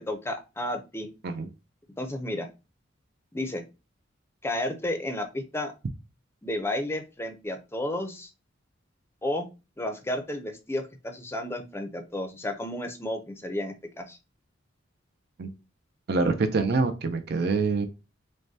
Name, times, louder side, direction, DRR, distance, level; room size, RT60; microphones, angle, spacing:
voice 1, 0.0-1.1 2.0-2.5 3.3-3.6 4.4-5.7 6.4-8.3 9.2-9.5 9.8-14.2, left 1 dB, 15° left, 6 dB, 0.6 m, -32 dB
voice 2, 16.1-17.9, right 4 dB, 55° right, 7 dB, 0.5 m, -25 dB
6.3 x 2.2 x 2.7 m, 0.28 s
head